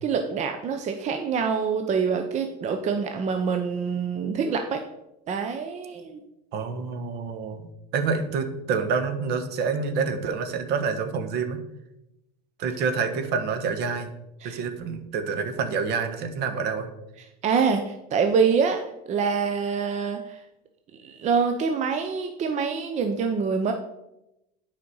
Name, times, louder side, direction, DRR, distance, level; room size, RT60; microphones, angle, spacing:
voice 1, 0.0-4.8 5.3-6.2 14.4-14.6 17.4-18.8 19.1-20.4 21.0-23.7, right 5 dB, 35° right, 5 dB, 0.7 m, -25 dB
voice 2, 6.5-11.6 12.6-14.2 14.4-16.9, right 5 dB, 55° right, 8 dB, 1.2 m, -27 dB
8.6 x 5.1 x 5.5 m, 0.90 s
supercardioid pair, 120°, 21 cm